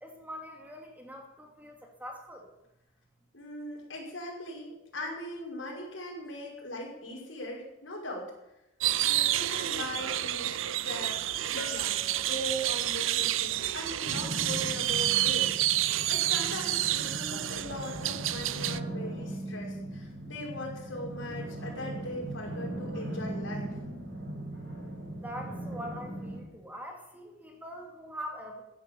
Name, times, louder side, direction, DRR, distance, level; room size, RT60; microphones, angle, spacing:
voice 1, 0.0-2.5 25.0-28.6, equal, 10° right, 2 dB, 2.7 m, -43 dB
voice 2, 3.3-8.3 9.0-10.5 10.8-23.7, left 1 dB, 85° left, -2 dB, 5.8 m, -40 dB
sound 1, 8.8-18.8, right 14 dB, 85° right, 0.6 m, -29 dB
Bell, 11.6-13.2, left 3 dB, 60° left, 3.4 m, -46 dB
sound 2, 14.0-26.4, right 1 dB, 70° right, 7.6 m, -39 dB
15.5 x 10.5 x 7.1 m, 0.89 s
head